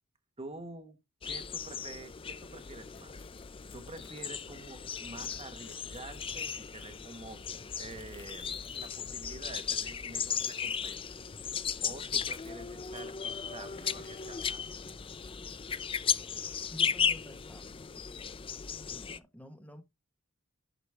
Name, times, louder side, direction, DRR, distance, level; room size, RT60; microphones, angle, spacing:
voice 1, 0.4-1.0 1.2-3.1 3.7-11.0 11.8-14.6, right 2 dB, 25° right, 1.3 m, -48 dB
sound 1, 1.2-19.2, left 7 dB, 25° left, 0.4 m, -36 dB
sound 2, 2.9-4.6 5.0-9.1 9.4-13.1 13.6-16.2, left 6 dB, 60° left, 1.2 m, -61 dB
voice 2, 16.7-17.8 18.9-19.8, left 1 dB, 5° left, 1.2 m, -50 dB
11.5 x 5.0 x 3.5 m
head